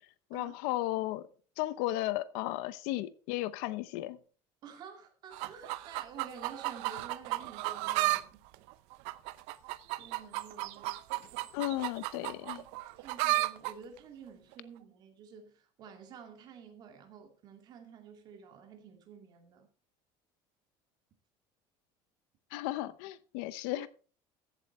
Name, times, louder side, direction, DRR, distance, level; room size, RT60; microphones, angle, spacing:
voice 1, 0.3-1.3 1.6-4.2 11.5-12.6 22.5-23.9, left 16 dB, 85° left, 0.8 m, -34 dB
voice 2, 4.6-8.4 10.0-11.5 13.0-19.7, right 6 dB, 40° right, 2.3 m, -51 dB
sound 1, 5.3-8.2 8.5-13.7 14.5-14.6, right 19 dB, 70° right, 0.7 m, -34 dB
14.5 x 8.0 x 4.3 m
cardioid pair, 170°, 11 cm